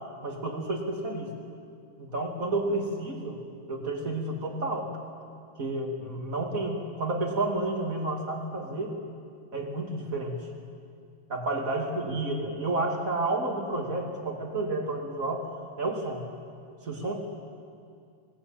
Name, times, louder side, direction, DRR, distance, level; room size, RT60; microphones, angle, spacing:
voice 1, 0.2-1.3 2.0-3.4 3.7-4.9 5.6-8.9 9.5-10.4 11.3-15.5 15.8-16.2 16.8-17.2, right 2 dB, 25° right, 1 dB, 2.9 m, -30 dB
26.5 x 18.0 x 8.9 m, 2.3 s
omnidirectional pair, 3.5 m